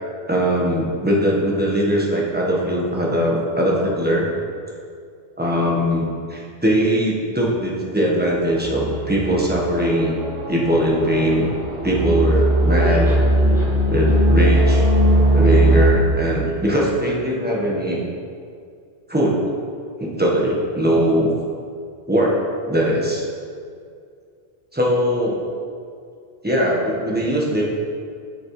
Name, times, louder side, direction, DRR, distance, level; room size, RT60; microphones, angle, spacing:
voice 1, 0.3-4.3 5.4-10.1 10.5-11.5 11.8-13.2 13.9-14.9 15.3-18.0 19.1-19.4 20.0-21.3 22.1-22.4 22.7-23.2 24.7-25.4 26.4-27.6, equal, 10° right, -4 dB, 1.3 m, -20 dB
sound 1, 8.6-15.9, right 1 dB, 25° right, 1.6 m, -18 dB
11.5 x 6.4 x 3.3 m, 2.3 s
omnidirectional pair, 1.2 m